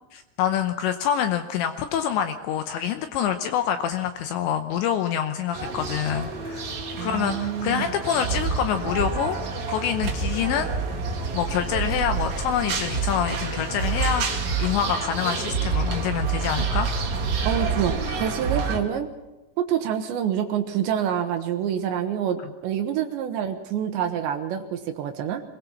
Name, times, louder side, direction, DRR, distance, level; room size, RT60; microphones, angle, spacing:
voice 1, 0.1-9.4 9.7-10.7 11.3-16.9, left 9 dB, 80° left, 8 dB, 2.7 m, -26 dB
sound 1, 5.5-18.8, right 5 dB, 50° right, 2.4 m, -28 dB
voice 2, 7.0-7.9 17.4-19.1 19.6-25.4, right 9 dB, 75° right, 7 dB, 2.9 m, -27 dB
24.0 x 20.5 x 5.9 m, 1.1 s
omnidirectional pair, 6.0 m